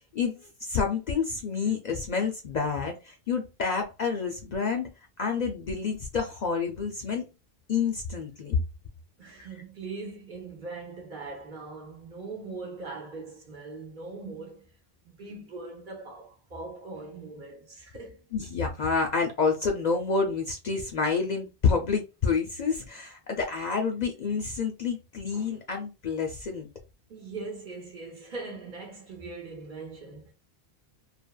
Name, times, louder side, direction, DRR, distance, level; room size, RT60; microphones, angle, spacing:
voice 1, 0.6-4.9 5.2-7.3 7.7-8.6 18.3-26.7, left 5 dB, 55° left, 0.5 m, -28 dB
voice 2, 9.2-14.7 15.0-18.2 27.1-30.3, right 3 dB, 55° right, 0.9 m, -41 dB
3.3 x 2.0 x 2.2 m
omnidirectional pair, 1.0 m